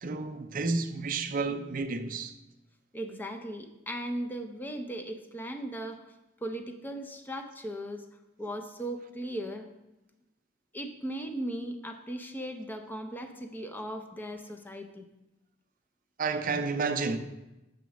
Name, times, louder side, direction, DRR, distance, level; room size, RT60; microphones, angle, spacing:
voice 1, 0.0-2.3 16.2-17.2, right 4 dB, 45° right, 0.4 m, -31 dB
voice 2, 2.9-6.0 6.4-8.1 8.4-9.7 10.7-15.1, right 1 dB, 10° left, 0.5 m, -37 dB
7.1 x 3.0 x 5.8 m
head